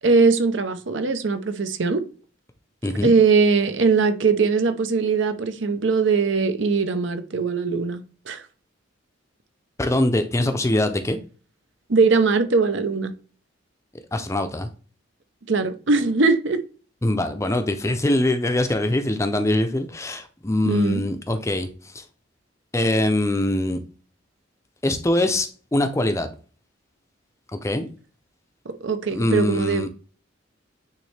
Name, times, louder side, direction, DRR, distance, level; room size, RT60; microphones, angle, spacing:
voice 1, 0.0-2.0 3.0-8.4 11.9-13.1 15.5-16.6 20.6-21.0 28.7-29.9, right 4 dB, 65° right, 0.7 m, -20 dB
voice 2, 9.8-11.2 14.1-14.7 17.0-21.7 21.9-22.0 22.7-23.8 24.8-26.3 27.5-27.9 29.1-29.9, left 1 dB, 15° left, 0.5 m, -23 dB
9.1 x 3.2 x 3.3 m
head